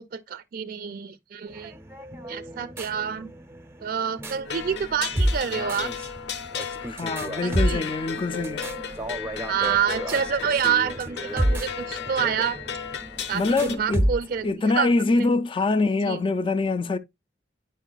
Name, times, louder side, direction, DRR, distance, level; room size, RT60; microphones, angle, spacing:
voice 1, 0.0-1.7 2.3-3.3 3.8-5.9 7.4-7.9 9.5-12.6 13.3-14.9 15.2-15.3 16.1-16.2, right 8 dB, 55° right, 0.4 m, -27 dB
sound 1, 1.5-14.5, equal, 15° right, 0.6 m, -31 dB
sound 2, 4.5-13.8, left 7 dB, 65° left, 0.7 m, -35 dB
voice 2, 6.8-8.7 13.3-14.1 14.4-17.0, left 3 dB, 30° left, 0.4 m, -24 dB
9.8 x 4.6 x 2.2 m
head